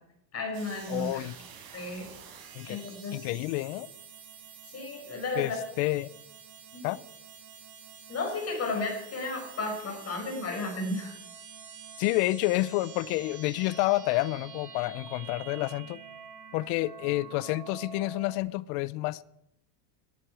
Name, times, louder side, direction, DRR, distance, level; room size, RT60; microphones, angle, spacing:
voice 1, 0.3-1.3 1.7-2.1 2.6-3.2 4.7-5.6 6.7-6.8 8.1-11.1, left 2 dB, 30° left, 5.9 m, -33 dB
sound 1, 0.5-18.4, right 7 dB, 45° right, 5.2 m, -48 dB
voice 2, 0.9-1.4 2.5-2.8 3.1-3.9 5.4-5.5 5.8-6.1 6.8-7.0 12.0-16.0 16.5-19.2, left 18 dB, 70° left, 0.8 m, -29 dB
21.0 x 11.0 x 4.9 m
supercardioid pair, 135°, 47 cm